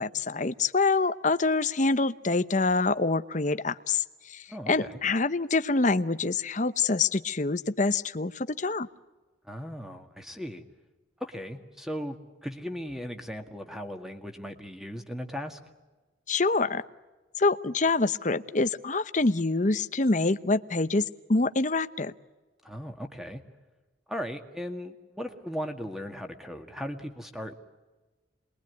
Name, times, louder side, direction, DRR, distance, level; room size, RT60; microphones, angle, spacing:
voice 1, 0.0-4.0 4.3-8.9 16.3-16.8 17.4-22.1, left 3 dB, 40° left, 12 dB, 0.8 m, -26 dB
voice 2, 4.5-5.0 9.4-10.6 11.2-15.6 22.6-23.4 24.1-27.6, equal, ahead, 5 dB, 2.0 m, -37 dB
27.5 x 22.0 x 9.5 m, 1.2 s
head